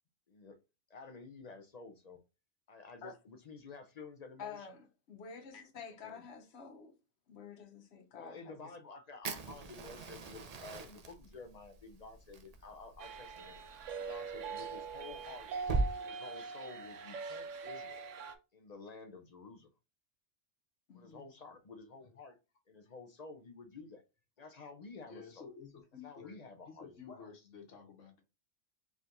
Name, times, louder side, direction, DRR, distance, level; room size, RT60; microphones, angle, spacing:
voice 1, 0.9-2.2 2.7-4.7 6.0-6.2 8.1-13.6 13.9-15.5 15.9-18.0 18.5-19.7 20.9-22.4 22.7-24.0 24.4-25.5 26.0-27.3, left 3 dB, 45° left, 0.6 m, -51 dB
voice 2, 4.4-7.0 7.3-8.7 20.9-21.3, left 6 dB, 60° left, 1.0 m, -49 dB
Fire, 9.2-15.9, right 3 dB, 45° right, 0.5 m, -41 dB
sound 1, 13.0-18.4, right 5 dB, 80° right, 1.0 m, -43 dB
voice 3, 25.1-28.2, left 6 dB, 75° left, 1.4 m, -52 dB
4.3 x 3.6 x 2.5 m
omnidirectional pair, 1.3 m